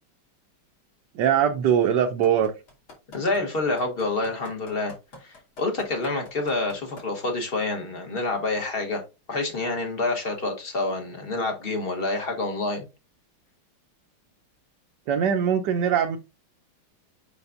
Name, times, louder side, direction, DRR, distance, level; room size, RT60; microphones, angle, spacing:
voice 1, 1.1-2.5 15.1-16.2, right 8 dB, 65° right, 1.2 m, -21 dB
sound 1, 2.2-7.0 7.5-7.6, left 2 dB, 70° left, 3.4 m, -44 dB
voice 2, 3.1-4.9 5.2-9.0 9.3-12.8, left 2 dB, 35° left, 1.2 m, -27 dB
7.0 x 6.3 x 2.6 m
omnidirectional pair, 2.3 m